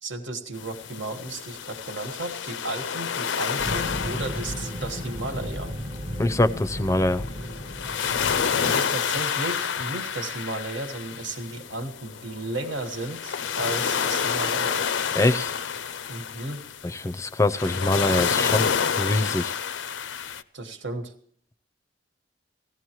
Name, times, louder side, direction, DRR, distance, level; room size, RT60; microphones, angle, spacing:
voice 1, 0.0-5.7 8.6-14.9 16.1-16.6 20.5-21.1, right 2 dB, 90° right, 5 dB, 1.5 m, -34 dB
sound 1, 0.6-20.4, left 7 dB, 85° left, 0.5 m, -29 dB
sound 2, 3.6-8.8, equal, 30° right, 0.7 m, -34 dB
voice 2, 6.2-7.2 15.2-15.5 17.0-18.7 19.0-19.5, left 2 dB, 15° left, 14 dB, 0.4 m, -23 dB
18.0 x 14.5 x 3.0 m, 0.64 s
head